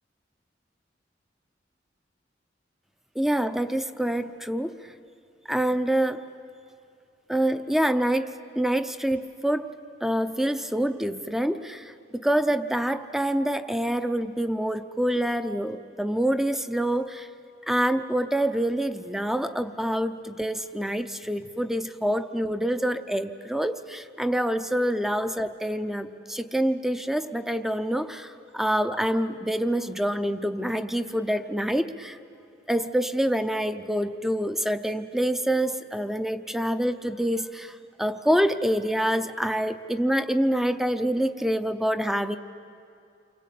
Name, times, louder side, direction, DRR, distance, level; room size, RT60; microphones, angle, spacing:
voice 1, 3.2-4.9 5.5-6.3 7.3-9.7 10.0-17.3 17.7-32.2 32.7-42.4, right 1 dB, ahead, 11 dB, 0.6 m, -26 dB
29.5 x 24.0 x 8.5 m, 2.6 s
head